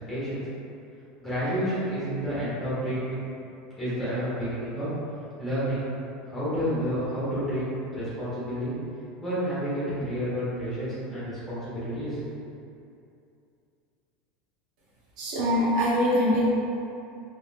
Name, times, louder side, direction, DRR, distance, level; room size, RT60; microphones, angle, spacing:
voice 1, 0.1-0.4 1.2-3.2 3.8-4.9 5.4-5.8 6.3-8.7 9.2-12.2, equal, 5° left, -12 dB, 1.4 m, -30 dB
voice 2, 15.2-16.5, equal, 75° right, -6 dB, 0.8 m, -23 dB
3.5 x 3.1 x 2.3 m, 2.6 s
supercardioid pair, 170°, 4 cm